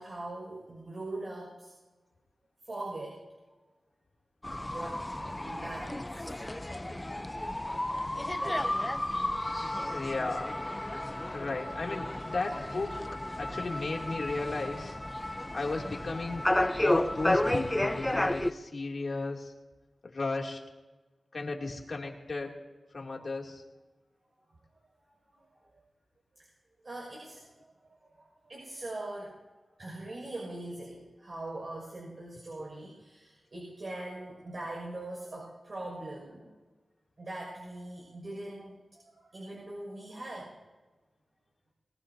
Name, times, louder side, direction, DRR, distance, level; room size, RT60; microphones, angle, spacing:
voice 1, 0.0-1.7 2.6-3.2 4.7-6.3 8.4-8.7 19.1-19.2 25.4-25.8 26.4-26.5 26.8-27.4 28.0-29.4 29.8-36.5 37.2-40.5, right 2 dB, 55° right, -3 dB, 6.0 m, -42 dB
sound 1, 4.4-18.5, left 1 dB, 20° left, 0.7 m, -32 dB
voice 2, 9.9-10.6 11.3-12.9 13.4-15.0 15.5-16.4 16.8-19.5 20.1-20.6 21.3-22.6 22.9-23.6, left 3 dB, 60° left, 0 dB, 2.7 m, -35 dB
23.5 x 18.5 x 2.8 m, 1.2 s
cardioid pair, 65°, 0 cm